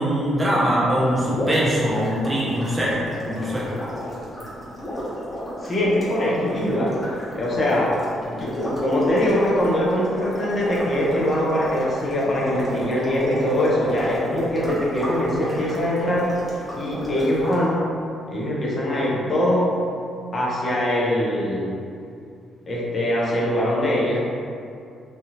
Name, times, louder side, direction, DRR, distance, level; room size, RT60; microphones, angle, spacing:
voice 1, 0.0-3.7, equal, 20° right, -6 dB, 0.8 m, -22 dB
sound 1, 1.3-17.6, equal, 20° left, 0.9 m, -32 dB
voice 2, 5.6-7.1 7.3-16.3 16.8-17.9 18.3-19.7 20.3-21.8 22.7-24.2, left 1 dB, 40° left, -5 dB, 0.6 m, -22 dB
3.2 x 2.3 x 2.8 m, 2.4 s
cardioid pair, 90°, 0 cm